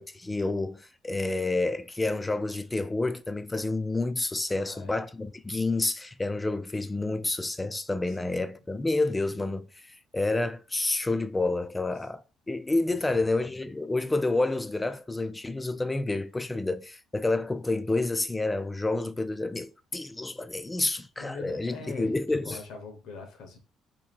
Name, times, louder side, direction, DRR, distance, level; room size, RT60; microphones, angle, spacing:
voice 1, 0.0-12.2 12.5-22.6, left 2 dB, 10° left, 0.3 m, -29 dB
voice 2, 4.5-4.9 8.1-8.4 12.9-13.3 20.7-20.8 21.2-23.6, left 4 dB, 80° left, 1.0 m, -43 dB
2.8 x 2.7 x 4.3 m
cardioid pair, 140°, 0 cm